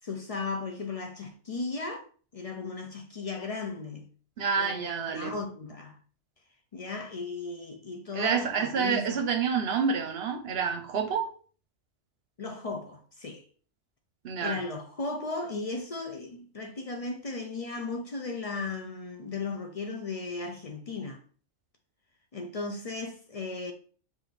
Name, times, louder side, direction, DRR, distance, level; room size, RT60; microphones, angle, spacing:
voice 1, 0.0-2.0 2.3-4.1 4.6-6.0 6.7-9.2 12.4-13.4 14.4-21.2 22.3-23.7, left 3 dB, 45° left, 0.5 m, -36 dB
voice 2, 4.4-5.3 8.1-11.3 14.2-14.6, right 6 dB, 60° right, 0.9 m, -28 dB
4.8 x 2.6 x 4.1 m
omnidirectional pair, 1.3 m